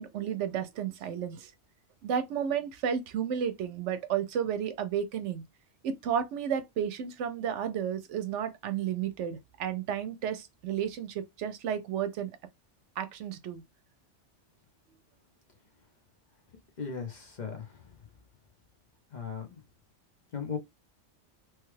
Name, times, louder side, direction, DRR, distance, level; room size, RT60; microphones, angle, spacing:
voice 1, 0.0-1.5 2.0-5.4 5.8-12.3 13.0-13.6, right 8 dB, 75° right, 0.9 m, -32 dB
voice 2, 16.8-17.8 19.1-19.6 20.3-20.6, left 6 dB, 45° left, 0.7 m, -37 dB
3.1 x 2.3 x 3.1 m
omnidirectional pair, 1.2 m